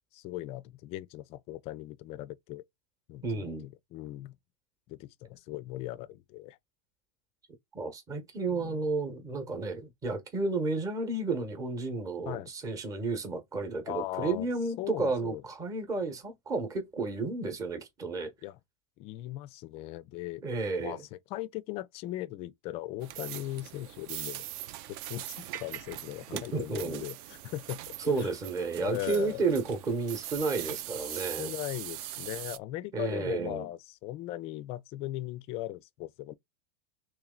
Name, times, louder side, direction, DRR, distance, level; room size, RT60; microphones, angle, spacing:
voice 1, 0.1-2.6 3.1-4.4 4.9-6.6 8.5-8.9 12.3-12.5 13.8-14.5 14.8-15.4 18.4-18.6 19.0-20.4 20.8-24.5 24.9-28.3 28.8-29.4 31.1-36.3, left 15 dB, 35° left, 0.4 m, -39 dB
voice 2, 3.2-3.7 7.7-18.3 20.4-21.0 26.3-27.0 28.1-31.5 32.9-33.7, right 3 dB, 20° right, 1.0 m, -32 dB
sound 1, 23.0-32.6, right 13 dB, 45° right, 0.4 m, -41 dB
3.1 x 3.0 x 3.7 m
supercardioid pair, 140°, 18 cm